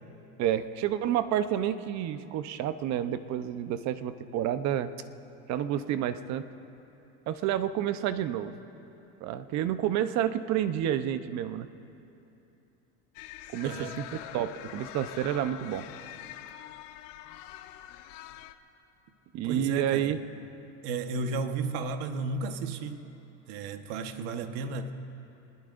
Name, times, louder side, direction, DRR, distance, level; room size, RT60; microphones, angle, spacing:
voice 1, 0.4-4.9 5.5-6.5 7.3-8.5 9.2-11.7 13.5-15.9 19.3-20.2, right 11 dB, 50° right, 0.9 m, -29 dB
sound 1, 13.1-18.5, left 12 dB, 65° left, 0.9 m, -44 dB
voice 2, 13.6-14.0 19.4-20.2 20.8-23.1 23.5-24.9, right 3 dB, 75° right, 1.4 m, -33 dB
26.5 x 20.5 x 2.6 m
supercardioid pair, 125°, 35 cm